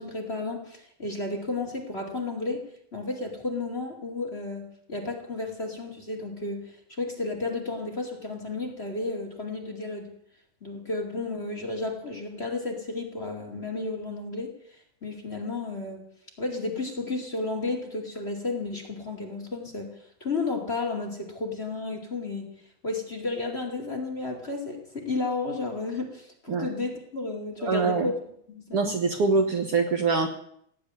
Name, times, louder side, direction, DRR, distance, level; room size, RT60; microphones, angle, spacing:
voice 1, 0.0-2.6 2.9-10.1 10.6-16.0 16.4-19.9 20.2-22.5 22.8-28.1 28.5-29.0, left 3 dB, 20° left, 3 dB, 2.2 m, -32 dB
voice 2, 27.6-28.1 28.7-30.3, right 4 dB, 55° right, 5 dB, 1.9 m, -24 dB
17.5 x 8.5 x 9.6 m, 0.70 s
omnidirectional pair, 3.4 m